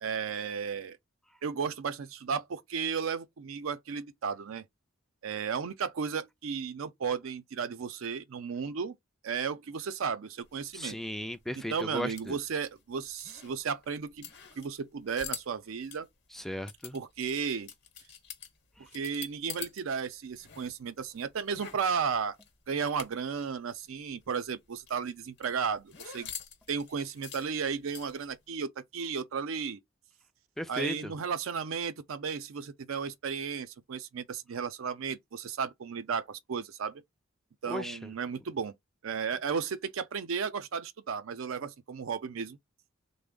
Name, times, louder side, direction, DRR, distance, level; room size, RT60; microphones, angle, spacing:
voice 1, 0.0-1.0 1.4-4.7 5.2-9.0 9.2-11.0 11.5-14.3 14.6-16.1 16.9-17.7 18.8-22.4 22.7-26.3 26.7-29.8 30.7-37.0 37.6-38.7 39.0-42.6, right 6 dB, 85° right, 0.5 m, -34 dB
sound 1, 10.4-19.8 20.1-23.4 23.7-23.8 24.1-28.4, left 8 dB, 60° left, 0.9 m, -46 dB
voice 2, 10.7-12.4 16.4-17.0 30.6-30.9 37.7-38.0, equal, ahead, 0.3 m, -36 dB
3.3 x 2.1 x 3.6 m
head